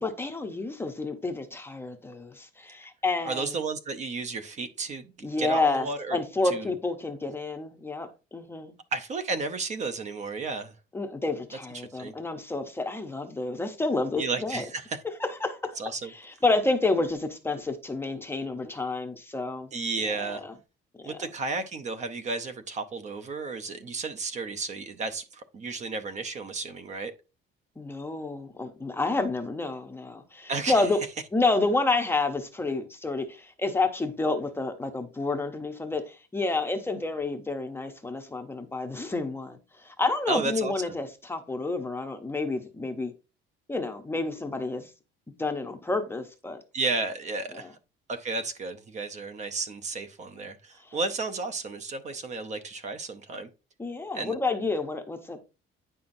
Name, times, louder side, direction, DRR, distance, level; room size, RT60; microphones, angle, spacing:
voice 1, 0.0-3.6 5.2-8.7 10.9-14.6 15.2-15.8 16.0-19.7 20.0-20.5 21.0-21.2 27.8-31.0 31.3-43.1 43.7-44.9 45.4-46.6 47.5-47.7 50.9-51.0 53.8-55.4, left 3 dB, 10° left, 0.6 m, -29 dB
voice 2, 3.2-5.1 5.4-6.2 6.4-6.7 8.9-10.7 11.7-12.1 14.2-15.0 15.8-16.1 19.7-20.4 21.0-27.1 30.5-30.9 40.3-40.9 46.7-47.8 48.1-53.5 54.1-54.3, right 3 dB, 35° right, 0.6 m, -33 dB
9.5 x 5.6 x 2.6 m
cardioid pair, 180°, 21 cm